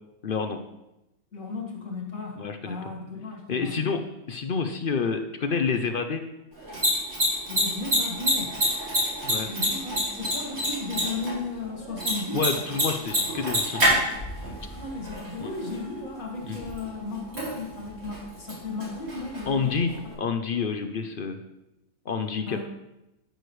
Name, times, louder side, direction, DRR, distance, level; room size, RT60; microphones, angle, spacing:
voice 1, 0.2-0.6 2.4-2.8 3.5-6.2 9.2-9.5 12.3-14.0 15.4-15.5 16.4-16.6 19.5-21.4 22.1-22.6, left 5 dB, 55° left, 7 dB, 0.6 m, -28 dB
voice 2, 1.3-3.8 7.4-8.6 9.5-12.7 14.7-19.8 22.5-22.6, left 3 dB, 70° left, -1 dB, 2.4 m, -35 dB
Mechanisms, 6.5-20.1, equal, 80° right, 4.4 m, -29 dB
13.5 x 6.5 x 3.2 m, 0.93 s
omnidirectional pair, 1.5 m